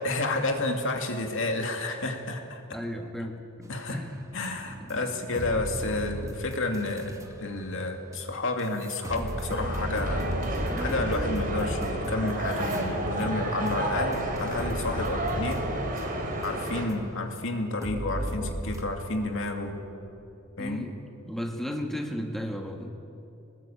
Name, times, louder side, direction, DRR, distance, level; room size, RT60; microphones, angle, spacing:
voice 1, 0.0-2.6 3.7-4.0 4.3-10.3 10.8-15.6 16.4-19.8 20.6-20.9, left 2 dB, 65° left, 4 dB, 2.5 m, -30 dB
voice 2, 2.7-4.2 4.8-5.1 20.6-21.0 21.3-22.9, equal, ahead, 2 dB, 1.6 m, -35 dB
sound 1, 3.9-7.3 8.1-8.2 8.6-16.9 17.4-17.5 17.8-18.8, equal, 15° right, 2.0 m, -36 dB
sound 2, 9.1-16.9, right 1 dB, 40° right, 3.7 m, -31 dB
25.0 x 19.5 x 8.8 m, 2.9 s
head